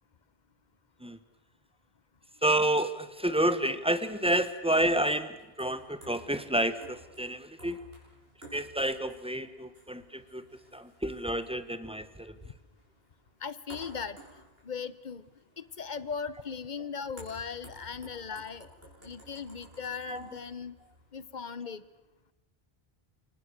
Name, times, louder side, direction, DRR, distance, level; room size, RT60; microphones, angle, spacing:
voice 1, 2.4-7.8 8.5-10.4 10.7-12.3 20.0-20.4, right 1 dB, 5° right, 12 dB, 1.2 m, -29 dB
sound 1, 3.8-21.3, equal, 70° right, 7.5 m, -55 dB
voice 2, 13.4-14.2 14.6-15.2 15.6-18.7 19.0-20.8 21.1-21.8, left 6 dB, 50° left, 16 dB, 1.1 m, -38 dB
28.0 x 23.5 x 6.6 m, 1.0 s
omnidirectional pair, 1.0 m